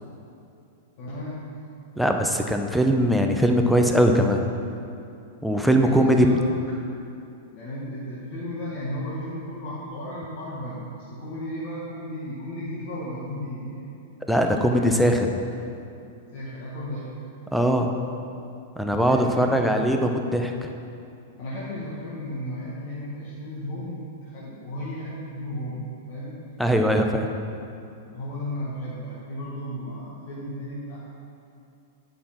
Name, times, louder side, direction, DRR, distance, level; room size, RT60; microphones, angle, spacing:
voice 1, 1.0-1.5 5.7-6.4 7.5-14.0 14.3-15.0 16.3-17.1 18.9-19.8 21.4-26.4 28.0-31.1, equal, 55° left, -7 dB, 1.5 m, -34 dB
voice 2, 2.0-4.4 5.4-6.3 14.3-15.3 17.5-17.9 18.8-20.7 26.6-27.3, equal, ahead, 3 dB, 0.7 m, -21 dB
8.4 x 5.6 x 4.5 m, 2.6 s
hypercardioid pair, 110°, 0 cm